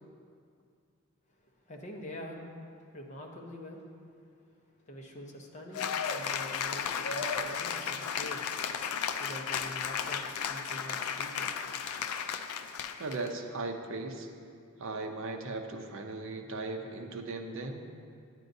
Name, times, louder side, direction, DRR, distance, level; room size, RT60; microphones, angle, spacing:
voice 1, 1.7-2.4 2.9-3.8 4.9-8.4 9.2-11.5, equal, 35° left, 0 dB, 0.8 m, -45 dB
Cheering / Applause, 5.7-13.3, left 7 dB, 85° left, 0.4 m, -34 dB
voice 2, 13.0-14.3 14.8-17.9, right 3 dB, 60° right, 4 dB, 0.6 m, -37 dB
9.8 x 9.0 x 2.7 m, 2.3 s
head